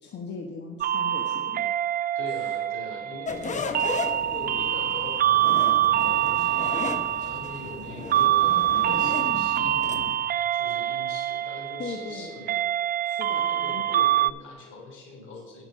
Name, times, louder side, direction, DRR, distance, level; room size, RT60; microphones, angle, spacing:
voice 1, 0.0-1.7 11.8-12.3 13.0-13.8, left 4 dB, 60° left, 1 dB, 1.2 m, -38 dB
sound 1, 0.8-14.3, right 12 dB, 50° right, 0.4 m, -25 dB
voice 2, 2.1-3.7 4.2-10.1 10.5-12.6 13.3-15.6, left 2 dB, 80° left, 0 dB, 3.2 m, -42 dB
sound 2, 3.2-10.2, left 4 dB, 35° left, 1.0 m, -35 dB
9.9 x 6.0 x 6.2 m, 1.5 s
cardioid pair, 90°, 20 cm